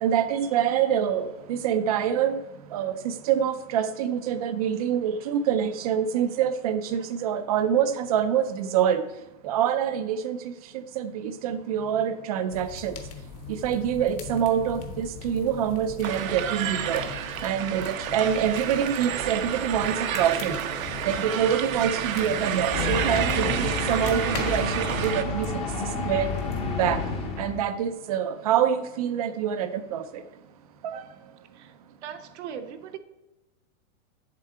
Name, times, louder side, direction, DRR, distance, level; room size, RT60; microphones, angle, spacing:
voice 1, 0.0-2.4 2.7-9.0 9.4-13.0 13.5-17.1 17.4-25.7 26.0-26.4 26.8-27.0 27.4-30.2 30.8-31.0, right 9 dB, 30° right, 11 dB, 0.4 m, -26 dB
sound 1, 12.5-25.1, left 6 dB, 45° left, 1.1 m, -40 dB
sound 2, 16.0-25.2, right 9 dB, 85° right, 1.0 m, -30 dB
sound 3, 22.7-27.7, left 3 dB, 15° left, 0.7 m, -30 dB
voice 2, 32.0-33.0, right 8 dB, 60° right, 6 dB, 0.9 m, -39 dB
7.4 x 7.4 x 4.4 m, 1.0 s
supercardioid pair, 165°, 40 cm